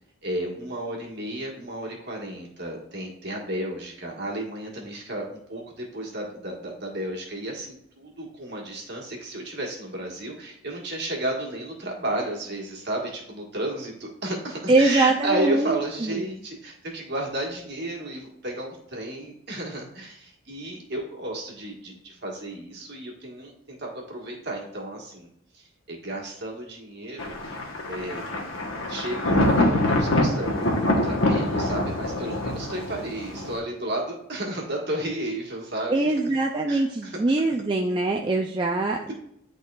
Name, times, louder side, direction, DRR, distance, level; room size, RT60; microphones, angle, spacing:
voice 1, 0.2-25.3 25.5-28.3 28.9-36.1 36.7-37.2, right 1 dB, 50° right, 0 dB, 1.5 m, -33 dB
voice 2, 14.7-15.7 16.0-16.2 35.9-39.1, right 2 dB, 20° right, 0 dB, 0.3 m, -23 dB
Thunder, 27.2-33.6, left 1 dB, 70° left, 1.1 m, -25 dB
11.0 x 3.7 x 2.4 m, 0.74 s
head